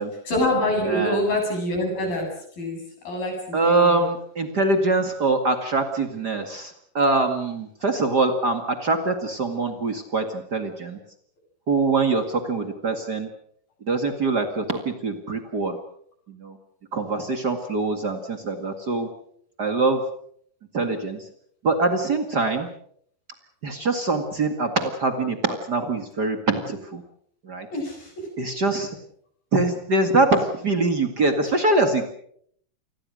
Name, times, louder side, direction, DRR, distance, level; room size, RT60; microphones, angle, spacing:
voice 1, 0.2-4.0 27.7-28.3, left 1 dB, 50° left, 2 dB, 9.4 m, -26 dB
voice 2, 0.8-1.3 3.5-11.0 11.7-13.3 13.9-15.8 16.3-16.6 16.9-19.1 19.6-20.0 20.7-21.2 21.6-22.7 23.6-27.0 27.4-27.7 28.4-29.0 29.5-32.1, right 3 dB, 60° right, 6 dB, 1.0 m, -23 dB
28.5 x 21.0 x 6.4 m, 0.67 s
omnidirectional pair, 5.2 m